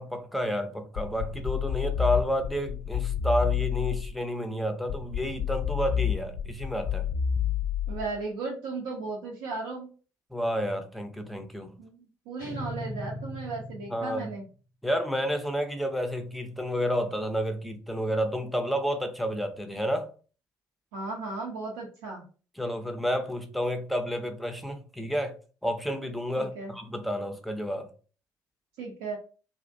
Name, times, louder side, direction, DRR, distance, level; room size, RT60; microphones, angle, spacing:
voice 1, 0.0-7.1 10.3-11.7 13.9-14.3 14.8-20.1 22.6-25.4 25.6-27.9, equal, ahead, 0.5 m, -30 dB
sound 1, 1.0-4.2 4.9-8.2, left 8 dB, 60° left, 0.4 m, -30 dB
voice 2, 7.9-9.9 11.8-14.4 20.9-22.2 26.4-26.7 28.8-29.2, right 3 dB, 70° right, 0.5 m, -36 dB
sound 2, 12.4-14.4, left 1 dB, 90° left, 0.7 m, -38 dB
2.5 x 2.0 x 2.5 m
figure-of-eight pair, 45°, 10 cm